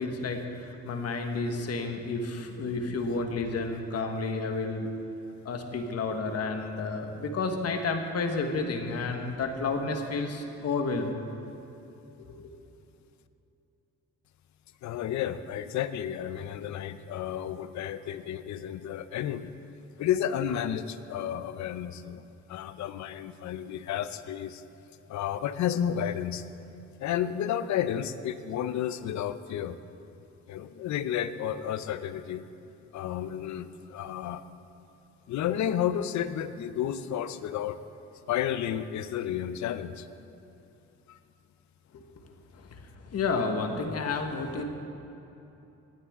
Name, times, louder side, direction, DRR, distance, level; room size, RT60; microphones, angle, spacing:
voice 1, 0.0-4.9 5.4-11.3 12.2-12.5 41.9-42.0 42.5-44.6, left 3 dB, 55° left, 4 dB, 1.4 m, -31 dB
voice 2, 14.8-19.5 20.0-22.2 22.5-24.6 25.1-26.4 27.0-29.8 30.5-32.5 32.9-34.4 35.3-37.8 38.3-40.1 41.1-41.2, left 10 dB, 70° left, 13 dB, 0.6 m, -31 dB
18.0 x 10.0 x 3.7 m, 2.9 s
cardioid pair, 90°, 30 cm